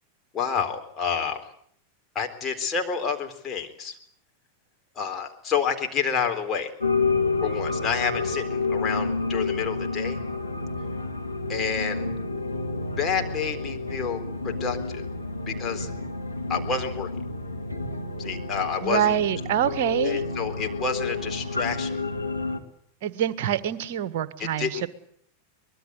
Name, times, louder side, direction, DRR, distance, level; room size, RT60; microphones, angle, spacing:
voice 1, 0.3-1.4 2.1-4.0 5.0-6.7 7.4-10.2 11.5-12.1 13.0-15.1 15.5-15.9 16.5-17.1 18.2-19.1 20.0-22.0 24.6-24.9, left 6 dB, 25° left, 4 dB, 3.9 m, -29 dB
sound 1, 6.8-22.6, left 3 dB, 85° left, 2.1 m, -30 dB
voice 2, 18.8-20.2 23.0-24.9, right 10 dB, 50° right, 14 dB, 1.6 m, -25 dB
24.0 x 21.5 x 8.3 m, 0.65 s
figure-of-eight pair, 90°, 0 cm